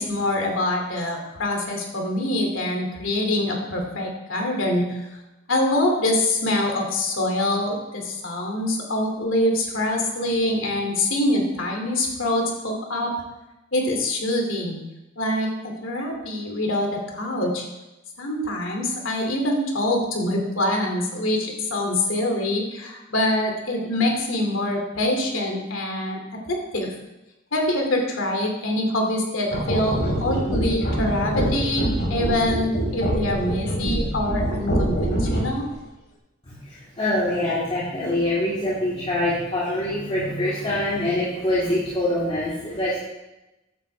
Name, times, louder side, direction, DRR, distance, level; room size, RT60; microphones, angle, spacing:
voice 1, 0.0-5.0 5.5-13.1 13.7-14.8 15.2-15.5 15.8-17.6 18.2-26.2 26.5-26.9 27.5-35.7, left 1 dB, 75° left, 1 dB, 2.7 m, -25 dB
sound 1, 29.5-35.7, equal, 55° left, 4.3 m, -25 dB
voice 2, 36.4-43.0, left 1 dB, 30° left, -10 dB, 3.6 m, -24 dB
15.0 x 11.5 x 3.5 m, 1.0 s
head